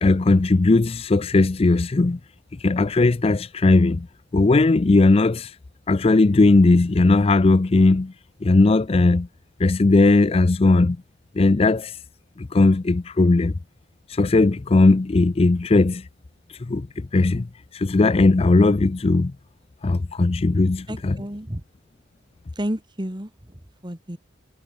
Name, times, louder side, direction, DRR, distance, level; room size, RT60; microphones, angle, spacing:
voice 1, 0.0-2.2 2.6-4.1 4.3-5.6 5.9-8.1 8.4-9.3 9.6-11.0 11.3-12.0 12.4-13.6 14.1-16.1 16.5-19.3 19.8-21.2, left 3 dB, 30° left, 0.4 m, -18 dB
voice 2, 20.9-21.6 22.6-24.2, equal, 25° right, 2.4 m, -31 dB
head